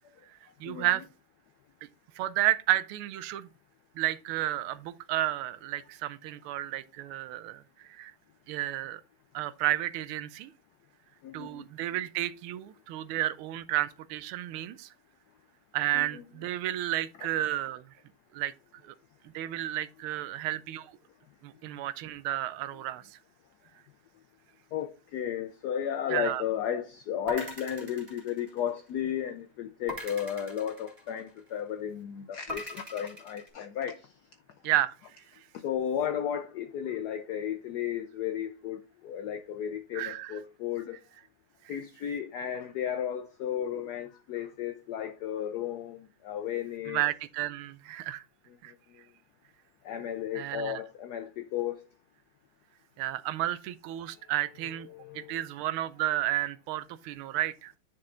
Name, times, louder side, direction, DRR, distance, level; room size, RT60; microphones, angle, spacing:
voice 1, 0.6-1.0 2.2-3.5 4.0-8.1 8.5-9.0 9.3-10.5 11.3-14.9 15.7-17.8 18.3-18.5 18.8-18.9 19.3-20.9 21.4-23.2 26.1-26.4 34.6-34.9 39.9-40.3 46.9-48.2 48.6-48.7 50.3-50.8 53.0-54.9 55.1-57.7, right 14 dB, 85° right, 1.5 m, -32 dB
voice 2, 11.2-11.7 15.9-16.2 17.2-17.3 24.7-34.1 35.5-41.0 41.7-47.0 48.5-48.6 49.8-51.8 54.9-55.5, left 9 dB, 80° left, 0.9 m, -34 dB
sound 1, 27.3-29.0 29.9-31.5 32.5-33.5, left 1 dB, 30° right, 2.3 m, -41 dB
9.8 x 4.3 x 3.7 m
omnidirectional pair, 2.3 m